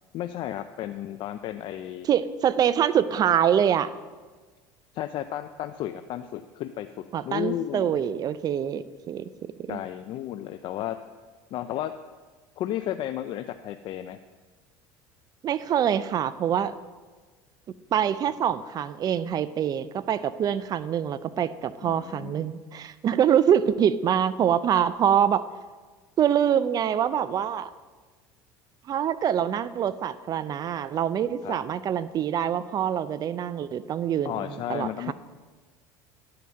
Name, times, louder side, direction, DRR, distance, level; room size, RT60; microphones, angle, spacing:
voice 1, 0.1-2.1 4.9-6.9 7.2-8.0 9.7-11.0 11.5-11.9 12.6-14.2 18.2-18.3 21.8-22.5 31.4-31.6 34.2-35.1, left 12 dB, 55° left, 8 dB, 0.5 m, -33 dB
voice 2, 2.0-3.9 7.1-9.3 9.6-9.8 15.4-16.7 17.9-25.4 26.2-27.7 28.9-35.1, right 9 dB, 40° right, 15 dB, 0.5 m, -25 dB
11.0 x 5.8 x 6.4 m, 1.4 s
supercardioid pair, 105°, 10 cm